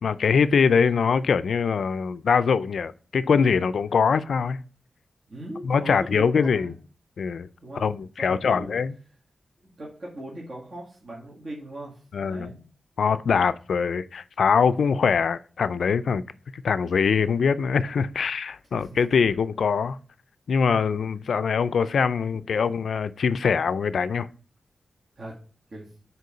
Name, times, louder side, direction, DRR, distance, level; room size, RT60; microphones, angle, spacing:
voice 1, 0.0-4.6 5.6-6.7 7.2-7.5 7.8-8.9 12.1-12.5 13.0-16.2 16.5-20.0 20.5-24.3, left 6 dB, 85° left, 0.4 m, -23 dB
voice 2, 5.3-6.8 7.6-7.9 8.2-8.8 9.6-12.7 18.7-18.9 25.2-25.3 25.7-25.9, right 1 dB, 50° right, 1.9 m, -39 dB
6.6 x 4.5 x 5.0 m
wide cardioid pair, 135°, 0 cm